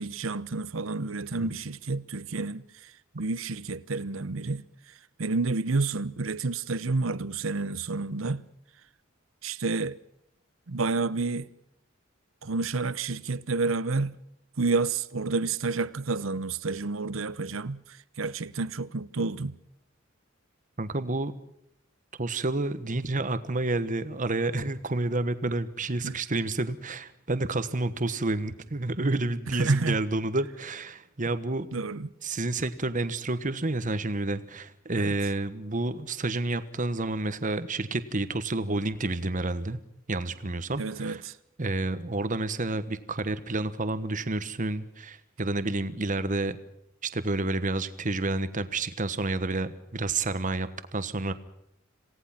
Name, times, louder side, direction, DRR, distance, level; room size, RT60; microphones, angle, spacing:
voice 1, 0.0-4.7 5.2-8.5 9.4-10.0 10.7-11.5 12.4-14.2 14.6-19.6 26.0-26.2 29.6-30.0 31.7-32.1 35.0-35.1 40.8-41.3, right 3 dB, 80° right, 0.9 m, -30 dB
voice 2, 20.8-21.3 22.2-31.7 32.2-39.8 40.1-41.2 41.6-46.6 47.0-51.3, right 2 dB, 40° right, 1.3 m, -29 dB
27.0 x 17.5 x 5.9 m
head